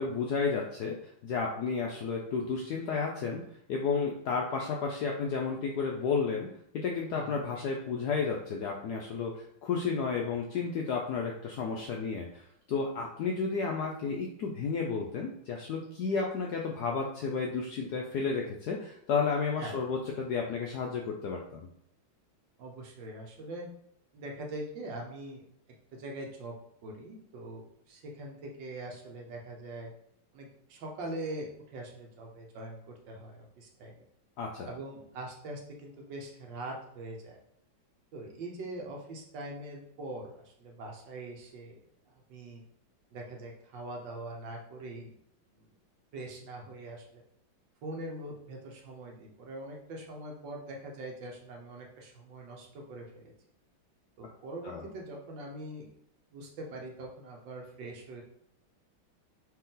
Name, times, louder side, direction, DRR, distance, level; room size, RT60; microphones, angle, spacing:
voice 1, 0.0-3.4 3.7-6.5 6.7-21.7 34.4-34.7 54.6-54.8, left 5 dB, 75° left, 0 dB, 0.9 m, -32 dB
voice 2, 7.1-7.5 19.6-19.7 22.6-23.7 24.1-25.4 25.9-26.6 26.8-29.9 30.3-34.1 34.6-37.4 38.1-41.8 42.1-42.6 43.1-45.1 46.1-47.2 47.8-53.3 54.2-55.9 56.3-58.2, right 1 dB, 70° right, 0 dB, 1.5 m, -42 dB
4.4 x 3.2 x 3.7 m, 0.71 s
omnidirectional pair, 2.2 m